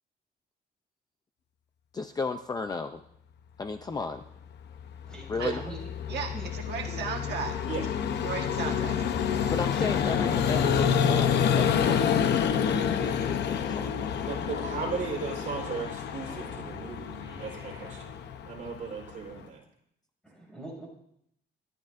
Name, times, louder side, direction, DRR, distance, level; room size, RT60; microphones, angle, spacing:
voice 1, 1.9-3.0 3.6-4.3 5.3-5.6 9.5-13.9, left 4 dB, 20° left, 7 dB, 0.5 m, -34 dB
Vehicle, 4.7-19.4, left 8 dB, 70° left, 0.8 m, -28 dB
voice 2, 5.1-5.8 6.3-6.5 6.9-7.0 9.7-11.0 20.2-20.9, right 2 dB, 5° left, -2 dB, 6.4 m, -44 dB
voice 3, 6.1-7.6 8.2-9.0, right 6 dB, 70° right, 1 dB, 1.5 m, -35 dB
Male speech man speaking, 10.2-12.4 13.5-15.3 16.2-18.2, right 2 dB, 15° right, 7.2 m, -50 dB
voice 4, 14.3-18.1 18.4-19.6, right 5 dB, 45° right, -1 dB, 4.5 m, -36 dB
28.5 x 13.0 x 2.6 m, 0.74 s
cardioid pair, 170°, 18 cm